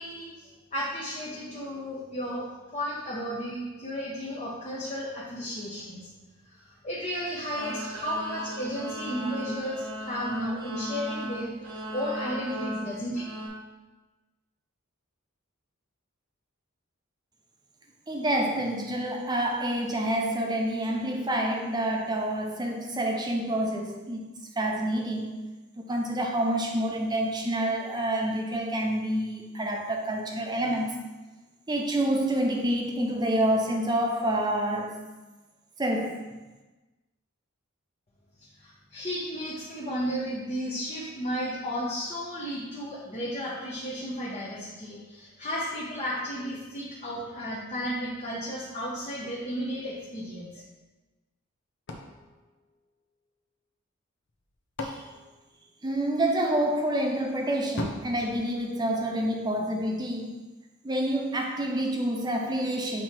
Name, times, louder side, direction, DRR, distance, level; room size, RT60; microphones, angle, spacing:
voice 1, 0.0-6.1 6.6-13.3 38.6-50.6, equal, 30° left, -6 dB, 0.9 m, -33 dB
sound 1, 7.6-13.5, right 1 dB, 80° right, 1.8 m, -37 dB
voice 2, 18.1-24.3 24.6-25.3 25.8-31.0 31.7-34.9 35.8-36.2 54.8-55.0 55.8-60.4 60.8-63.0, right 1 dB, 20° right, 2 dB, 0.7 m, -28 dB
sound 2, 51.9-53.4 54.3-56.3 57.8-59.4, left 2 dB, 55° left, 0.7 m, -40 dB
7.5 x 3.0 x 4.4 m, 1.2 s
head